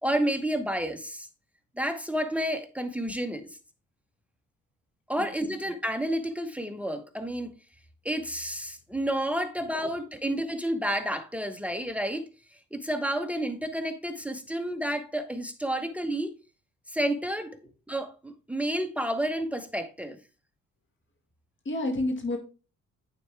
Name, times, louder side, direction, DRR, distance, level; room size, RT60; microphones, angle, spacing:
voice 1, 0.0-1.3 1.8-3.6 5.1-7.5 8.0-12.2 12.7-16.3 16.9-17.6 17.9-20.2, right 1 dB, 5° right, 0.8 m, -30 dB
voice 2, 5.2-5.6 21.7-22.4, left 2 dB, 40° left, 1.9 m, -30 dB
8.9 x 4.2 x 3.3 m
cardioid pair, 90°, 30 cm